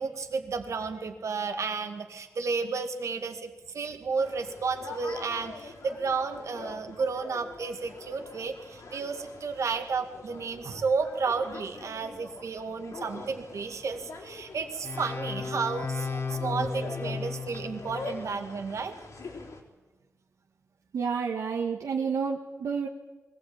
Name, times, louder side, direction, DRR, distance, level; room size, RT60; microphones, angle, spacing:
voice 1, 0.0-19.0, right 4 dB, 70° right, 6 dB, 2.2 m, -32 dB
sound 1, 4.2-19.6, left 3 dB, 75° left, 4.3 m, -44 dB
sound 2, 14.8-18.4, left 4 dB, 50° left, 2.1 m, -34 dB
voice 2, 20.9-22.9, right 6 dB, 85° right, 0 dB, 1.6 m, -30 dB
21.5 x 16.0 x 8.8 m, 1.2 s
cardioid pair, 60°, 5 cm